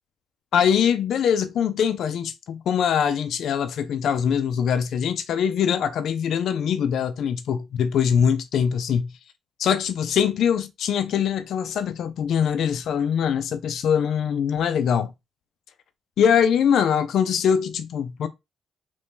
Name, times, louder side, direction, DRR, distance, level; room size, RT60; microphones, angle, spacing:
voice 1, 0.5-9.1 9.6-15.1 16.2-18.3, left 8 dB, 70° left, 0.4 m, -23 dB
2.9 x 2.6 x 3.6 m
cardioid pair, 90°, 0 cm